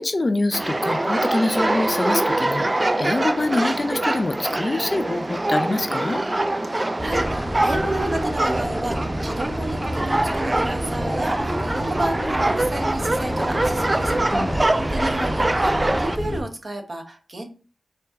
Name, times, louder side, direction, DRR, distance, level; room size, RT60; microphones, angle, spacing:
voice 1, 0.0-6.2 14.3-14.6, left 2 dB, 40° left, 8 dB, 0.5 m, -25 dB
sound 1, 0.5-16.2, right 2 dB, 25° right, 0.3 m, -24 dB
voice 2, 6.7-14.2 14.4-17.5, right 1 dB, 45° right, 4 dB, 1.0 m, -32 dB
sound 2, 7.0-16.4, equal, 5° right, 0.8 m, -29 dB
4.4 x 2.5 x 3.6 m, 0.36 s
cardioid pair, 60°, 0 cm